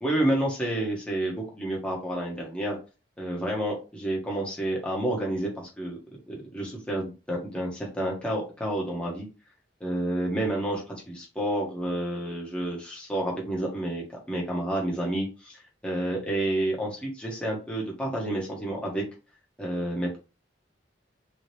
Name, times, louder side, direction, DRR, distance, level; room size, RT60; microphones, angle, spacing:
voice 1, 0.0-2.8 3.2-6.0 6.3-9.3 9.8-19.0 19.6-20.2, right 1 dB, 5° left, -3 dB, 1.1 m, -30 dB
3.6 x 3.3 x 3.1 m, 0.32 s
head